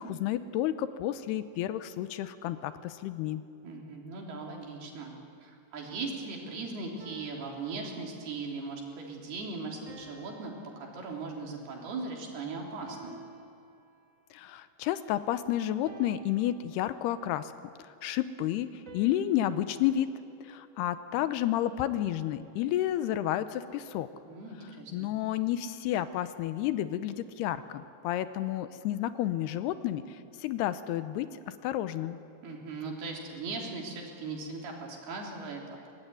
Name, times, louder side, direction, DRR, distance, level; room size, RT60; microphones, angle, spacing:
voice 1, 0.0-3.4 14.3-17.5 17.8-20.1 20.4-24.1 24.9-31.3 31.6-32.2, left 12 dB, 80° left, 12 dB, 2.8 m, -31 dB
voice 2, 3.6-5.1 5.4-10.5 10.8-13.2 24.3-25.1 32.4-35.9, right 3 dB, 70° right, -1 dB, 5.3 m, -39 dB
sound 1, 7.0-8.5 9.9-11.7 12.9-14.3 15.9-17.3 18.9-21.1, right 4 dB, 20° right, 2.7 m, -53 dB
24.0 x 19.0 x 9.5 m, 2.6 s
omnidirectional pair, 4.8 m